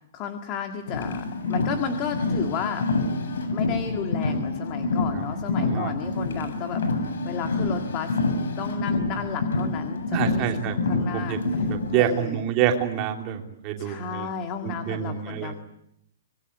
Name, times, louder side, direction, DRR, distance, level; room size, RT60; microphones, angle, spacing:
voice 1, 0.1-2.9 3.5-6.8 7.2-8.2 8.6-11.7 12.0-12.5 13.8-15.5, left 7 dB, 20° left, 6 dB, 1.8 m, -33 dB
Car, 0.9-12.0, left 3 dB, 85° left, 7.6 m, -27 dB
voice 2, 5.6-5.9 10.1-14.3 14.6-15.5, right 10 dB, 20° right, 3 dB, 3.0 m, -27 dB
25.0 x 22.0 x 9.7 m, 0.76 s
hypercardioid pair, 180°, 0 cm